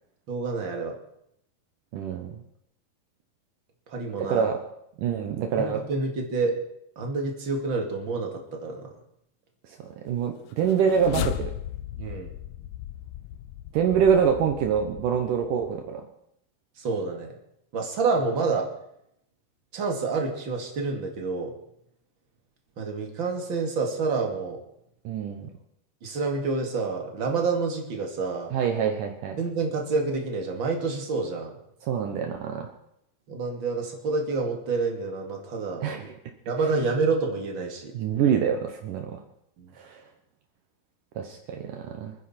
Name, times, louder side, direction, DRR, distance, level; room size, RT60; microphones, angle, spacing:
voice 1, 0.3-0.9 3.9-4.4 5.6-6.5 7.0-8.9 12.0-12.3 16.8-17.3 17.7-18.7 19.7-21.5 22.8-24.6 26.0-28.5 29.4-31.5 33.3-36.0 36.5-37.9 39.6-39.7, right 4 dB, 40° right, 2 dB, 2.5 m, -28 dB
voice 2, 1.9-2.3 4.2-4.6 5.0-5.8 9.8-11.5 13.7-16.0 25.0-25.5 28.5-29.4 31.8-32.7 35.8-36.1 37.9-39.2 39.8-40.0 41.2-42.1, right 7 dB, 70° right, 4 dB, 2.5 m, -25 dB
sound 1, 10.5-15.8, left 12 dB, 80° left, 1.8 m, -36 dB
27.5 x 10.0 x 4.4 m, 0.76 s
omnidirectional pair, 4.2 m